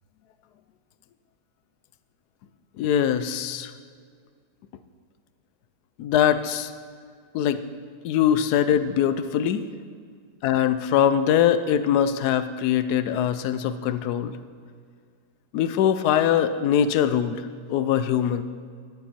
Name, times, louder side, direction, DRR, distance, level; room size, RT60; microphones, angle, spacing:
voice 1, 2.8-3.7 6.0-6.7 7.3-7.6 8.0-9.7 10.4-14.4 15.5-17.4 17.7-18.4, left 9 dB, 70° left, 12 dB, 1.1 m, -22 dB
13.0 x 10.5 x 4.4 m, 2.1 s
omnidirectional pair, 1.9 m